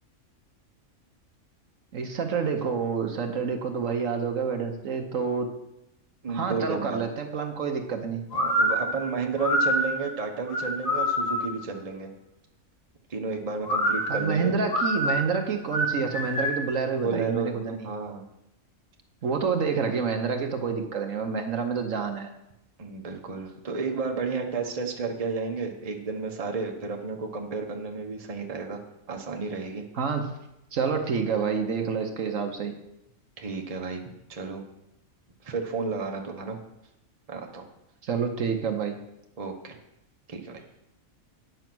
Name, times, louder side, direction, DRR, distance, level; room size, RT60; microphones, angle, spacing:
voice 1, 1.9-5.5 6.3-8.2 14.1-17.8 19.2-22.3 29.9-30.2 30.7-32.7 38.0-39.0, right 5 dB, 65° right, 5 dB, 1.3 m, -28 dB
voice 2, 6.2-7.0 8.3-12.1 13.1-14.5 17.0-17.6 17.8-18.2 22.8-28.8 29.1-29.8 33.4-34.6 35.4-36.6 37.3-37.6 39.4-39.8 40.3-40.8, right 4 dB, 30° right, 2 dB, 1.1 m, -32 dB
sound 1, 8.3-11.6 13.6-16.7, equal, 65° left, 2.8 m, -26 dB
9.2 x 6.3 x 6.0 m, 0.84 s
omnidirectional pair, 1.5 m